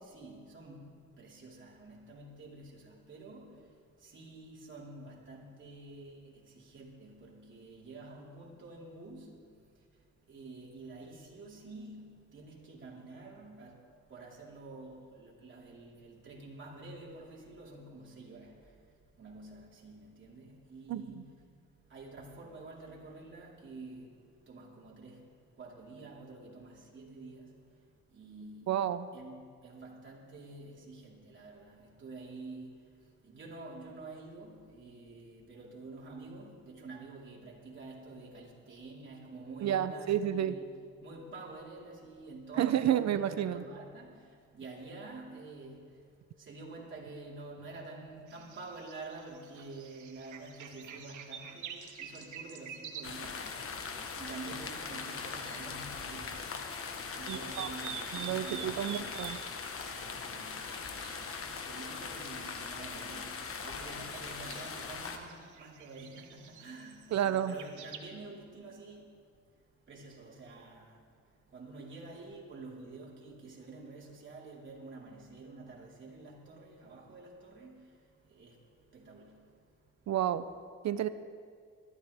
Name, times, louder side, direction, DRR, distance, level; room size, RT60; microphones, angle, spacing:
voice 1, 0.0-40.7 41.0-56.5 57.0-59.3 59.8-80.1, right 3 dB, 40° right, 4.2 m, -49 dB
voice 2, 28.7-29.1 39.6-40.6 42.6-43.6 57.3-57.7 58.1-59.4 67.1-67.5 80.1-80.5 80.8-81.1, right 10 dB, 60° right, 0.7 m, -30 dB
sound 1, 48.3-55.9 56.3-68.0, right 8 dB, 80° right, 1.3 m, -49 dB
sound 2, 53.0-65.2, left 5 dB, 45° left, 1.4 m, -40 dB
21.0 x 13.5 x 3.6 m
cardioid pair, 90°, 30 cm